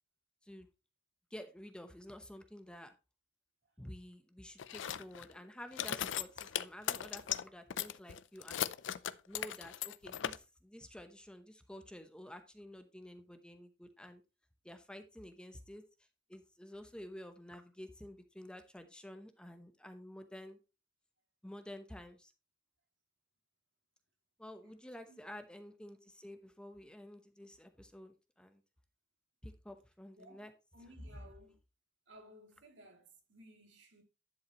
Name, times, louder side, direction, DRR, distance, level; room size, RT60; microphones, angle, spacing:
voice 1, 1.3-2.9 3.8-8.7 9.3-14.2 14.6-15.8 16.3-20.6 21.4-22.3 24.4-28.6 29.4-30.5, left 1 dB, 5° left, 0.9 m, -51 dB
sound 1, 4.6-5.4 5.7-7.4 7.7-10.4, left 10 dB, 85° left, 0.5 m, -38 dB
voice 2, 30.2-31.6 32.1-34.0, equal, 80° right, 2.6 m, -59 dB
10.5 x 7.2 x 3.0 m
head